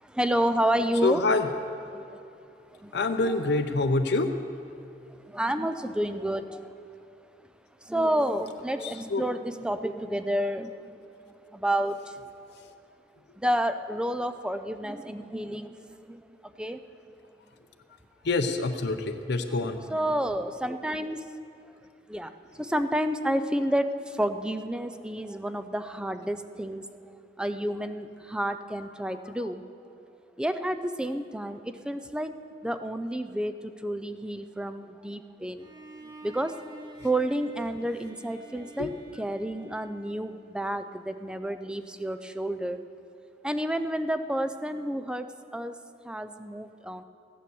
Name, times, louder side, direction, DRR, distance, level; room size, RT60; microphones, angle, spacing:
voice 1, 0.0-1.3 1.6-2.2 2.8-3.6 5.3-6.7 7.9-10.9 11.5-12.2 13.4-16.8 19.6-21.4 22.1-22.3 22.6-26.9 27.4-29.6 30.4-32.3 32.6-35.7 36.2-36.5 37.0-42.8 43.4-45.3 45.5-45.7 46.0-47.0, right 1 dB, 5° right, 10 dB, 0.5 m, -30 dB
voice 2, 1.0-1.5 2.9-4.3 8.8-9.2 18.2-19.8 38.8-38.9, left 3 dB, 65° left, 7 dB, 0.7 m, -26 dB
Bowed string instrument, 35.6-40.6, right 2 dB, 25° right, 1.4 m, -49 dB
15.0 x 9.3 x 7.0 m, 2.7 s
head